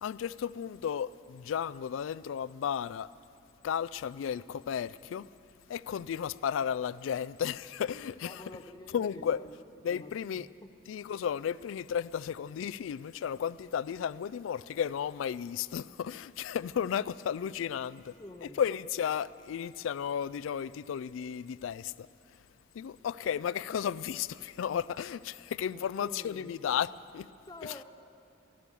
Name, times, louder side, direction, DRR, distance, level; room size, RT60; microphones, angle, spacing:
voice 1, 0.0-3.1 3.6-5.3 5.7-8.4 8.9-9.4 9.8-10.5 10.9-18.1 18.4-22.1 22.7-27.3 27.6-27.8, left 8 dB, 80° left, 0.3 m, -34 dB
voice 2, 8.2-9.6 9.9-10.7 18.2-18.7 25.7-26.5 27.5-27.8, left 1 dB, 20° left, 0.6 m, -48 dB
14.5 x 12.0 x 6.9 m
head